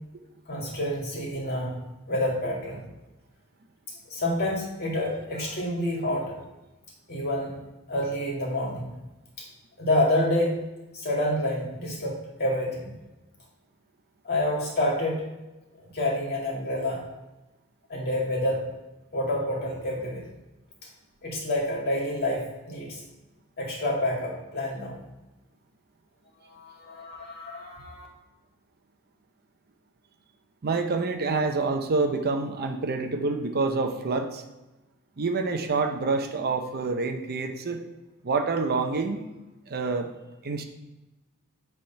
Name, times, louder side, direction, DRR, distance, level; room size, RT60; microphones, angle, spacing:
voice 1, 0.5-1.7 2.1-2.8 4.1-6.3 7.1-7.6 7.9-8.9 9.4-9.5 9.8-10.5 10.9-12.9 14.2-15.3 15.8-17.0 17.9-18.6 19.1-20.2 21.2-23.0 23.6-25.0 26.5-28.1, left 1 dB, 45° left, -3 dB, 2.2 m, -28 dB
voice 2, 30.6-34.4 35.2-37.8 38.2-39.2 39.7-40.1 40.4-40.6, right 3 dB, 45° right, 5 dB, 0.6 m, -27 dB
8.0 x 3.5 x 5.6 m, 1.1 s
head